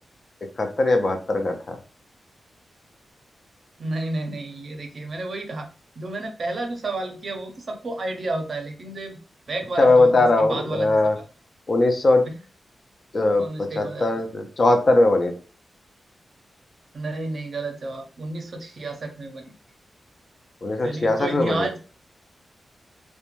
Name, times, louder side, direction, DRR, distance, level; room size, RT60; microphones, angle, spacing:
voice 1, 0.6-1.8 9.8-11.1 11.7-12.2 13.1-15.3 20.6-21.7, left 2 dB, 40° left, 5 dB, 0.4 m, -20 dB
voice 2, 3.8-5.7 6.0-9.2 9.5-11.1 12.2-12.3 13.1-14.3 16.9-19.5 20.8-21.8, right 2 dB, 50° right, 4 dB, 0.6 m, -31 dB
2.5 x 2.1 x 2.9 m, 0.36 s
wide cardioid pair, 145°, 0 cm